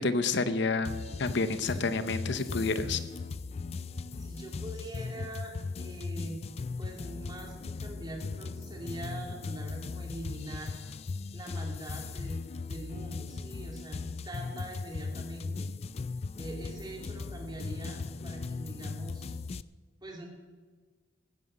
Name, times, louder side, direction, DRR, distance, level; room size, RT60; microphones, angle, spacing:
voice 1, 0.0-3.0, left 3 dB, 60° left, 12 dB, 0.8 m, -29 dB
sound 1, 0.8-19.6, left 4 dB, 30° left, 0.3 m, -38 dB
voice 2, 4.2-6.4 6.8-10.7 11.3-12.4 12.7-15.7 16.4-19.4 20.0-20.3, right 1 dB, 20° right, 0 dB, 2.7 m, -43 dB
15.5 x 9.3 x 6.4 m, 1.5 s
head